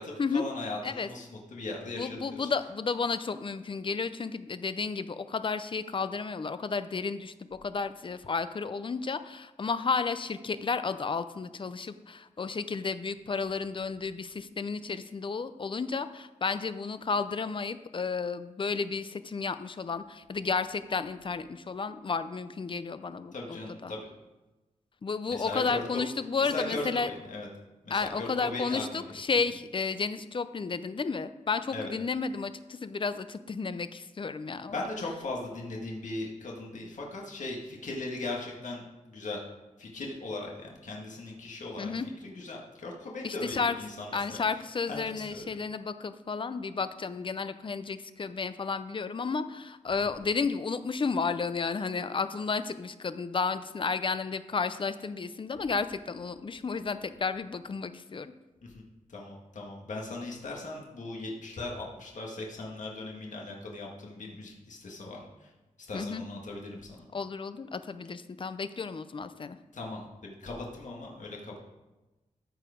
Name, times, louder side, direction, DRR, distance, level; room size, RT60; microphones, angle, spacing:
voice 1, 0.0-2.5 23.3-24.0 25.3-26.0 26.4-27.5 27.8-29.1 31.7-31.9 34.7-39.4 39.8-44.4 44.9-45.5 58.6-58.8 59.1-65.5 65.8-67.1 69.7-71.6, left 2 dB, 70° left, -2 dB, 1.7 m, -38 dB
voice 2, 1.9-23.9 25.0-27.1 27.9-34.9 41.8-42.1 43.2-43.7 44.1-58.3 65.9-66.2 67.1-69.6, left 4 dB, 40° left, 12 dB, 0.5 m, -32 dB
13.5 x 4.8 x 5.0 m, 1.1 s
wide cardioid pair, 125°, 13 cm